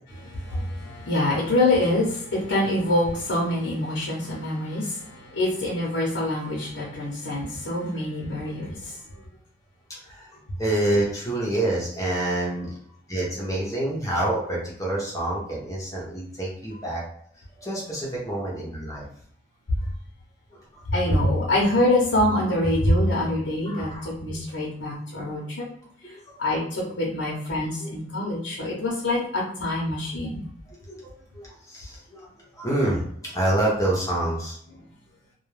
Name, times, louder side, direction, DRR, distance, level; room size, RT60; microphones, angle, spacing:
voice 1, 0.2-9.0 20.9-23.9 24.2-25.7 26.4-30.4, left 1 dB, 90° left, -4 dB, 0.7 m, -25 dB
voice 2, 10.6-12.7 13.1-17.0 17.5-19.0 20.7-20.8 23.7-24.1 26.0-26.1 27.8-27.9 28.2-28.3 30.9-32.3 32.6-34.6, right 1 dB, 20° left, -4 dB, 0.7 m, -27 dB
2.2 x 2.2 x 3.1 m, 0.65 s
head